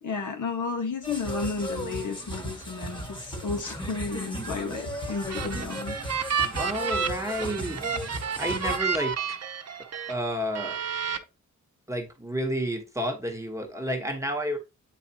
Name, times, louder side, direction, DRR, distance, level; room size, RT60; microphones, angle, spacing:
voice 1, 0.0-6.0, left 4 dB, 75° left, 1.6 m, -32 dB
sound 1, 1.0-8.8, equal, 15° left, 1.6 m, -36 dB
sound 2, 5.1-10.1 10.6-11.2, right 6 dB, 55° right, 0.8 m, -31 dB
voice 2, 6.6-7.8 8.4-9.4 10.1-10.8 11.9-14.6, equal, 10° right, 1.3 m, -30 dB
8.9 x 4.7 x 2.9 m
wide cardioid pair, 140°, 31 cm